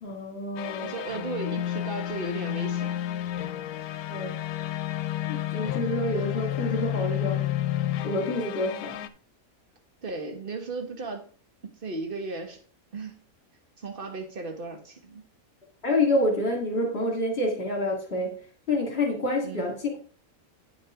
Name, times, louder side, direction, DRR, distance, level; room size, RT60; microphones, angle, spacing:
voice 1, 0.0-0.9 4.1-4.4 5.3-7.5 8.0-9.0 15.8-18.4 18.7-20.0, left 1 dB, 45° left, 2.3 m, -28 dB
sound 1, 0.6-9.1, left 13 dB, 90° left, 1.1 m, -31 dB
voice 2, 0.8-3.2 10.0-11.3 11.6-12.6 12.9-13.2 13.8-15.2 19.4-19.6, right 3 dB, 40° right, 1.5 m, -35 dB
9.3 x 6.0 x 3.6 m
omnidirectional pair, 1.5 m